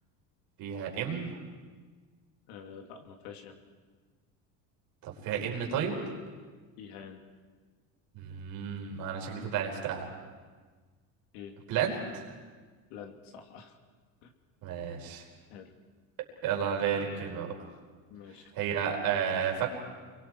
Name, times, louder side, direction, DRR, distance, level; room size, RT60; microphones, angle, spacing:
voice 1, 0.6-1.4 5.0-6.0 8.1-10.1 11.7-12.4 14.6-15.3 16.4-17.5 18.5-19.7, right 8 dB, 60° right, 1 dB, 4.6 m, -32 dB
voice 2, 2.5-3.6 6.8-7.2 9.4-9.6 11.3-11.5 12.9-13.8 14.2-14.3 15.5-15.7 18.1-18.7, left 7 dB, 85° left, 4 dB, 2.8 m, -47 dB
29.0 x 23.0 x 4.8 m, 1.4 s
cardioid pair, 150°, 40 cm